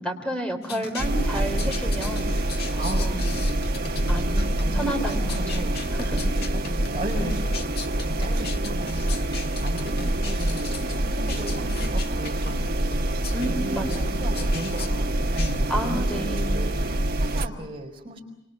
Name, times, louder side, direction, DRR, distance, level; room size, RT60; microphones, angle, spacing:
voice 1, 0.0-2.3 2.7-3.5 4.1-5.7 5.9-6.2 13.3-14.2 15.7-16.6, equal, 5° left, 4 dB, 3.5 m, -31 dB
sound 1, 0.6-16.0, left 5 dB, 50° left, 1.6 m, -39 dB
sound 2, 1.0-17.5, right 1 dB, 50° right, 1.4 m, -26 dB
voice 2, 2.8-3.1 3.7-5.7 6.1-6.2 6.5-7.7 8.0-9.3 9.6-12.7 13.4-18.2, right 1 dB, 25° right, 1 dB, 5.0 m, -36 dB
28.5 x 26.5 x 6.9 m, 0.89 s
head